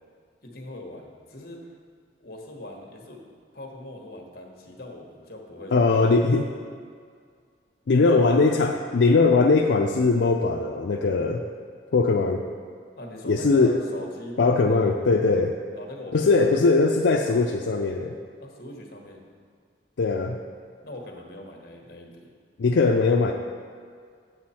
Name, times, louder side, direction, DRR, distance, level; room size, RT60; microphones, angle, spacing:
voice 1, 0.4-1.7 2.2-6.1 8.0-8.2 13.0-14.9 15.7-16.5 18.4-19.2 20.8-22.3, left 1 dB, 55° left, 1 dB, 1.3 m, -40 dB
voice 2, 5.7-6.5 7.9-11.4 11.9-12.4 13.3-13.7 14.4-15.5 16.1-18.1 20.0-20.4 22.6-23.3, left 3 dB, 80° left, 2 dB, 0.4 m, -20 dB
7.9 x 7.7 x 4.3 m, 2.1 s
head